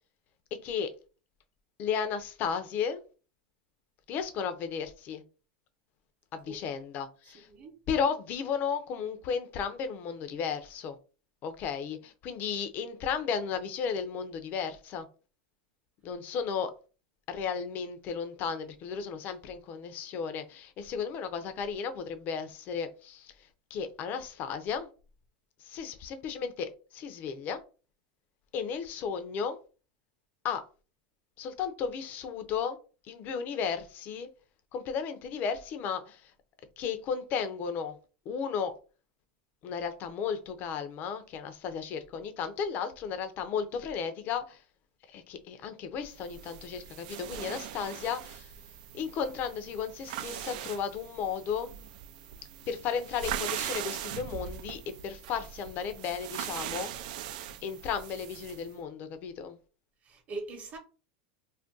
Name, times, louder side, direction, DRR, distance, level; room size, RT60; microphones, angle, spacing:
voice 1, 0.5-0.9 1.8-3.0 4.1-5.2 6.3-7.5 7.9-11.0 11.4-15.1 16.0-16.7 17.3-23.3 23.7-24.9 25.6-27.6 28.5-29.6 30.4-30.6 31.4-32.8 33.0-34.3 34.7-36.3 36.8-37.9 38.3-38.7 39.6-44.6 45.1-48.5 48.9-51.7 52.7-56.9 57.6-59.6, left 6 dB, 40° left, 0.5 m, -34 dB
voice 2, 7.3-7.8 60.0-60.8, right 3 dB, 30° right, 0.9 m, -42 dB
sound 1, 46.2-58.7, right 10 dB, 65° right, 0.3 m, -40 dB
2.5 x 2.1 x 3.7 m
supercardioid pair, 130°, 5 cm